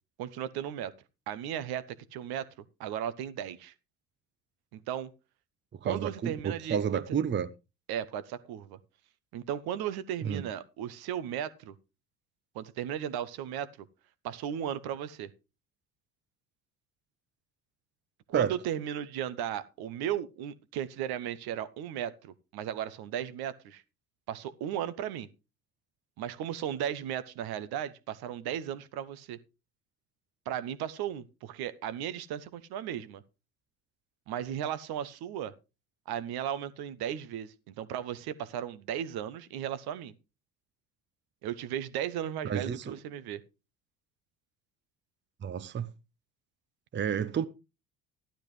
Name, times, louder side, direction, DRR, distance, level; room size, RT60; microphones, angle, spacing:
voice 1, 0.2-0.9 1.3-1.8 2.1-2.5 2.8-3.7 4.7-5.1 5.8-7.0 7.9-8.8 9.3-11.7 12.5-13.9 14.2-15.3 18.3-23.8 24.3-25.3 26.2-29.4 30.5-33.2 34.3-35.5 36.1-40.1 41.4-43.4, right 10 dB, 55° right, 1.1 m, -35 dB
voice 2, 5.7-7.5 10.2-10.4 18.3-18.5 42.4-43.0 45.4-45.9 46.9-47.5, right 8 dB, 25° right, 0.8 m, -30 dB
14.0 x 11.5 x 3.2 m
figure-of-eight pair, 55°, 44 cm